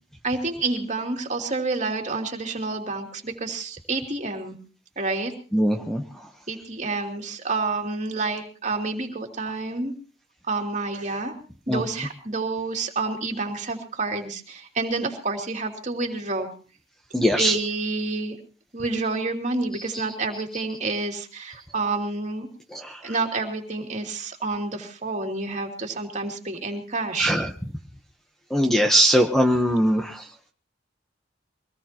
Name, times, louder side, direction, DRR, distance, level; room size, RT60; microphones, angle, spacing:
voice 1, 0.2-4.6 5.0-5.3 6.5-9.9 10.5-11.4 11.7-16.5 17.4-18.4 18.7-22.5 23.0-27.3, right 3 dB, 40° right, 2 dB, 3.0 m, -29 dB
voice 2, 5.5-6.0 11.7-11.8 17.1-17.5 22.7-23.0 27.2-27.5 28.5-30.2, equal, ahead, 4 dB, 1.0 m, -21 dB
24.0 x 18.5 x 3.0 m, 0.37 s
head